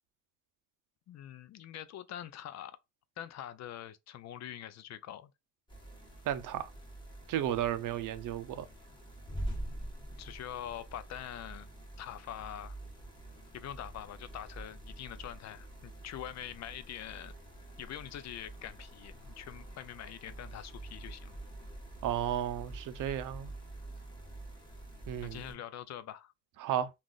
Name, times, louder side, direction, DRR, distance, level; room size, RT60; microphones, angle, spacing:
voice 1, 1.1-2.8 3.2-5.3 10.2-11.7 12.0-12.7 13.5-17.4 17.8-21.4 25.2-26.3, left 11 dB, 50° left, 0.4 m, -44 dB
sound 1, 5.7-25.5, right 1 dB, 15° left, 1.3 m, -46 dB
voice 2, 6.3-6.7 7.3-8.7 22.0-23.5 25.1-25.4 26.6-26.9, right 11 dB, 65° right, 0.6 m, -33 dB
3.6 x 2.5 x 2.4 m
cardioid pair, 110°, 35 cm